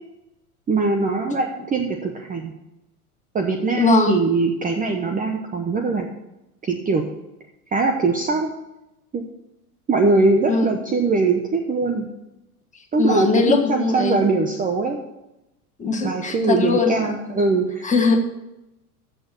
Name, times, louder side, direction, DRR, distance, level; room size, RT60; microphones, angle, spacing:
voice 1, 0.7-2.5 3.3-6.1 6.6-7.0 7.7-8.5 9.1-9.2 9.9-12.1 12.9-15.0 16.0-17.9, right 3 dB, 20° right, 4 dB, 0.8 m, -21 dB
voice 2, 3.7-4.2 10.5-10.7 13.0-14.3 15.8-17.0 17.8-18.2, left 3 dB, 15° left, 2 dB, 1.6 m, -20 dB
7.7 x 6.7 x 6.7 m, 0.92 s
hypercardioid pair, 105°, 45 cm